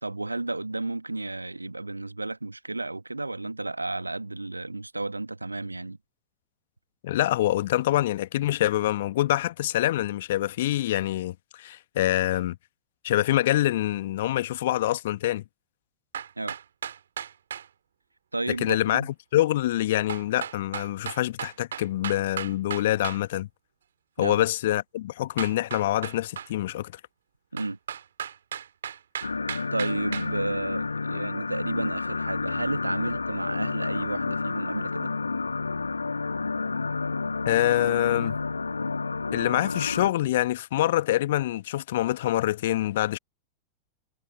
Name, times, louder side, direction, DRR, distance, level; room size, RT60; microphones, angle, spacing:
voice 1, 0.0-6.0 16.4-16.6 18.3-19.1 24.2-24.4 27.5-27.8 29.7-35.1, right 2 dB, 85° right, 1.3 m, -32 dB
voice 2, 7.0-12.6 13.0-15.4 18.6-23.5 24.2-26.9 37.4-38.4 39.3-43.2, left 14 dB, 55° left, 1.6 m, -25 dB
sound 1, 16.1-17.7 20.1-23.2 25.4-26.5 27.6-30.3, right 8 dB, 65° right, 2.9 m, -35 dB
sound 2, 29.2-40.1, left 4 dB, 80° left, 1.2 m, -30 dB
figure-of-eight pair, 90°, 0 cm